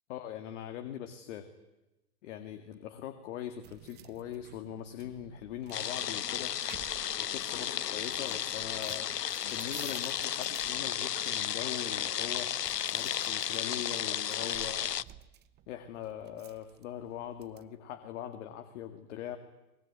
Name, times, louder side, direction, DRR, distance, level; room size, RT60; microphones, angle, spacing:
voice 1, 0.1-1.5 2.2-6.6 7.2-9.1 9.4-12.5 12.9-14.9 15.7-19.4, left 10 dB, 50° left, 8 dB, 2.3 m, -41 dB
sound 1, 3.6-17.7, right 13 dB, 20° right, 1.0 m, -55 dB
sound 2, 5.7-15.0, left 9 dB, 85° left, 0.8 m, -34 dB
24.0 x 22.0 x 9.8 m, 0.99 s
hypercardioid pair, 115°, 47 cm